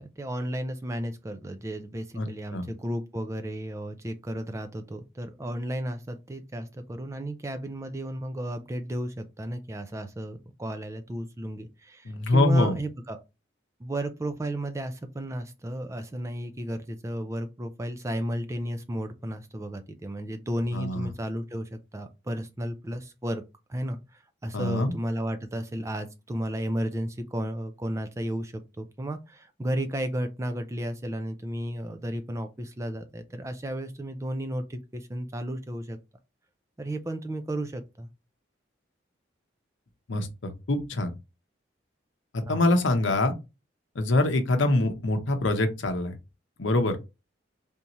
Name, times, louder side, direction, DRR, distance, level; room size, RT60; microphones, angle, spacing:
voice 1, 0.0-13.2 13.8-23.4 23.7-36.0 36.8-38.1 42.5-42.6, right 1 dB, 15° right, 0.3 m, -33 dB
voice 2, 12.0-12.8 20.7-21.1 24.5-24.9 40.1-41.1 42.3-43.3 43.9-46.1 46.6-47.0, left 2 dB, 85° left, 0.7 m, -24 dB
3.5 x 2.7 x 2.9 m
head